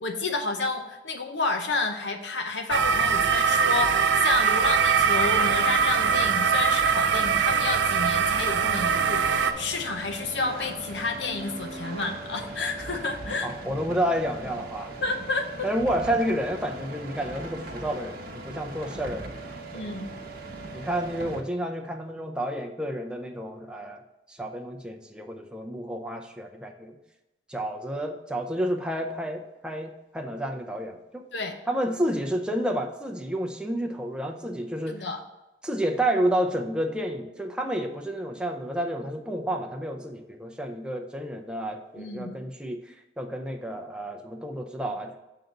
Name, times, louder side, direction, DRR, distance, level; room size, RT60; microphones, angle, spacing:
voice 1, 0.0-13.5 15.0-15.7 19.7-20.1 31.3-31.5 34.9-35.2 42.0-42.3, left 3 dB, 80° left, 5 dB, 0.8 m, -30 dB
sound 1, 2.7-9.5, right 6 dB, 85° right, 0.4 m, -22 dB
sound 2, 5.2-21.4, right 2 dB, 55° right, 0.9 m, -39 dB
voice 2, 13.4-14.9 15.6-19.3 19.7-19.9 20.7-24.0 24.3-27.0 27.5-31.2 31.7-35.1 35.6-45.2, right 1 dB, 5° right, 2 dB, 0.6 m, -30 dB
6.6 x 3.8 x 5.9 m, 1.0 s
head